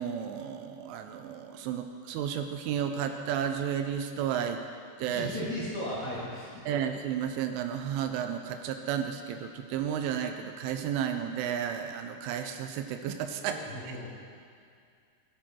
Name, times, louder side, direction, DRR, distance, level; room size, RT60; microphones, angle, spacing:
voice 1, 0.0-4.6 5.0-5.3 6.7-13.6 13.9-14.0, right 8 dB, 85° right, 6 dB, 3.2 m, -32 dB
voice 2, 5.0-6.6 13.4-14.1, left 1 dB, 45° left, -8 dB, 3.1 m, -36 dB
15.0 x 12.5 x 4.5 m, 2.3 s
omnidirectional pair, 5.6 m